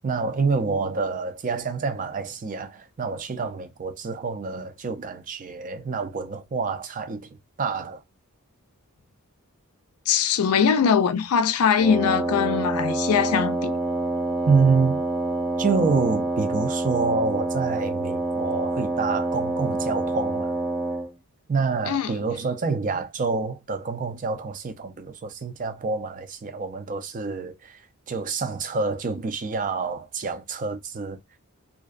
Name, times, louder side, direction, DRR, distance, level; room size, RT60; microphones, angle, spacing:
voice 1, 0.0-7.3 7.6-8.0 14.4-15.0 15.6-20.6 21.5-27.8 28.1-31.2, right 4 dB, 35° right, 0.4 m, -27 dB
voice 2, 10.1-13.8 21.9-22.1, left 7 dB, 75° left, 0.4 m, -21 dB
Wind instrument woodwind instrument, 11.8-21.1, right 2 dB, 5° left, 0.6 m, -27 dB
2.5 x 2.1 x 2.3 m
head